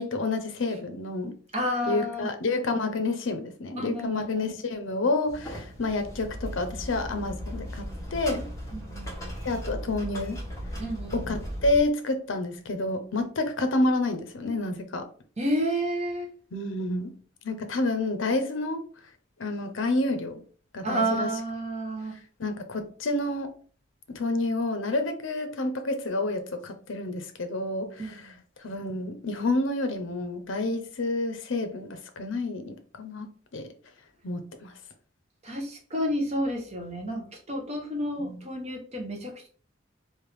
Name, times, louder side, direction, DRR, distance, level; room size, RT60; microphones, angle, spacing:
voice 1, 0.0-1.4 1.8-8.5 9.4-10.4 11.1-15.1 16.5-17.2 17.4-18.9 19.4-20.4 20.7-21.4 22.4-23.5 24.1-28.3 28.6-33.7 34.2-34.8 38.2-38.4, left 2 dB, 75° left, 0.6 m, -29 dB
voice 2, 1.5-2.3 3.8-4.5 8.7-9.1 10.8-11.3 15.4-16.3 20.8-22.2 28.0-28.4 35.4-39.5, equal, 35° right, 0.9 m, -30 dB
sound 1, 5.3-11.8, equal, 15° left, 1.2 m, -37 dB
3.3 x 2.6 x 3.3 m
head